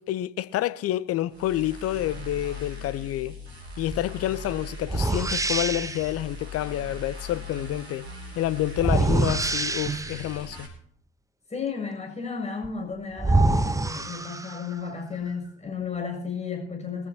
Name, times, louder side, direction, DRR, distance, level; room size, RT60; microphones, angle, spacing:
voice 1, 0.0-3.3 3.8-8.1 8.3-10.7, left 14 dB, 50° left, 0.9 m, -28 dB
sound 1, 1.3-10.7, left 1 dB, 90° right, 3.3 m, -40 dB
sound 2, 3.9-4.1 4.9-6.1 8.8-10.3 12.6-12.7 13.2-14.8, right 2 dB, 10° right, 1.0 m, -25 dB
voice 2, 8.9-9.2 11.5-17.1, left 5 dB, 20° left, 7.8 m, -33 dB
22.0 x 15.0 x 3.0 m
figure-of-eight pair, 60°, 31 cm